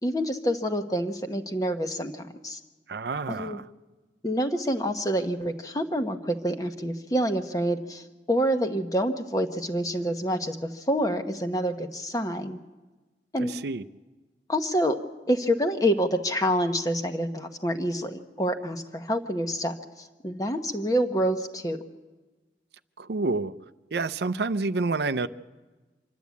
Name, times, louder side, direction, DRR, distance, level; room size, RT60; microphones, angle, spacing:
voice 1, 0.0-2.6 3.4-3.6 4.2-12.6 13.3-13.5 14.5-15.0 15.3-21.8, equal, 20° left, 7 dB, 1.0 m, -27 dB
voice 2, 2.9-3.7 13.4-13.8 23.0-23.5 23.9-25.3, right 3 dB, 70° right, 13 dB, 0.5 m, -28 dB
25.5 x 12.0 x 8.3 m, 1.2 s
head